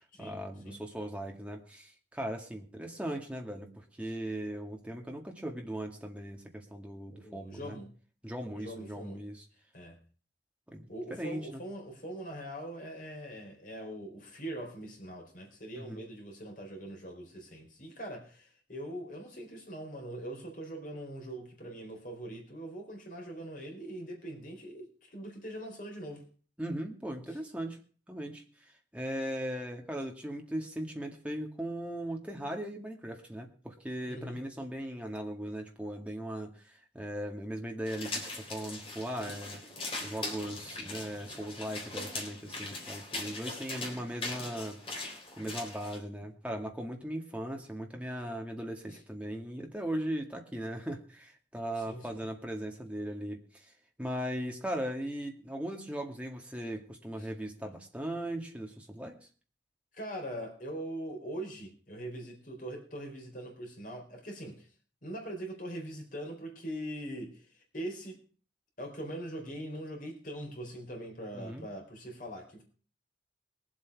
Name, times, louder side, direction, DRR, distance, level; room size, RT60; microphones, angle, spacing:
voice 1, 0.2-7.8 8.2-9.5 10.7-11.6 15.8-16.0 26.6-27.8 28.1-28.4 28.9-39.6 40.0-53.7 54.0-59.2 71.3-71.6, right 1 dB, 5° right, 2 dB, 1.9 m, -38 dB
voice 2, 7.1-7.9 8.6-9.2 9.7-10.0 10.9-26.3 34.1-34.4 48.9-49.0 51.8-52.3 57.2-57.3 59.9-64.7 65.0-67.5 67.7-68.2 68.8-72.6, right 1 dB, 45° left, 1 dB, 4.0 m, -42 dB
sound 1, 37.9-46.0, left 2 dB, 30° left, 3.6 m, -40 dB
21.5 x 7.9 x 4.7 m, 0.40 s
head